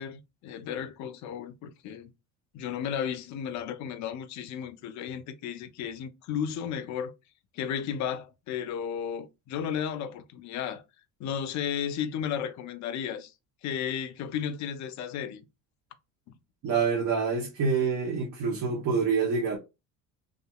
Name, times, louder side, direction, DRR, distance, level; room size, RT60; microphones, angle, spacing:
voice 1, 0.0-2.1 2.5-7.1 7.5-10.8 11.2-13.3 13.6-15.4 16.3-16.4, left 8 dB, 45° left, 0.5 m, -34 dB
voice 2, 16.6-19.6, right 5 dB, 50° right, 0.9 m, -26 dB
2.7 x 2.4 x 2.2 m
hypercardioid pair, 75°, 40 cm